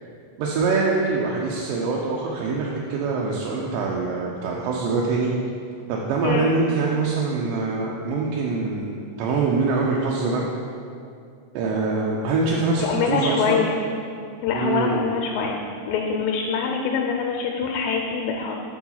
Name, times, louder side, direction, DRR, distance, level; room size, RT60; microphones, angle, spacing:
voice 1, 0.4-5.3 5.9-10.5 11.5-13.6 14.5-15.0, right 4 dB, 85° right, -2 dB, 2.3 m, -24 dB
voice 2, 12.8-13.8 14.4-18.6, left 5 dB, 85° left, 1 dB, 2.2 m, -24 dB
4.9 x 4.7 x 5.5 m, 2.4 s
omnidirectional pair, 3.9 m